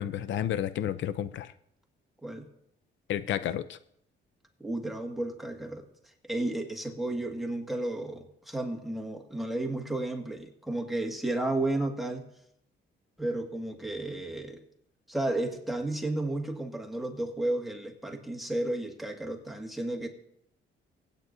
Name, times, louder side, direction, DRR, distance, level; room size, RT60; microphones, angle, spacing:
voice 1, 0.0-1.5 3.1-3.8, left 10 dB, 70° left, 15 dB, 0.6 m, -31 dB
voice 2, 4.6-5.8 6.2-12.3 13.2-14.6 15.1-20.1, right 2 dB, ahead, 3 dB, 1.8 m, -32 dB
24.0 x 8.9 x 2.7 m, 0.76 s
cardioid pair, 90°, 20 cm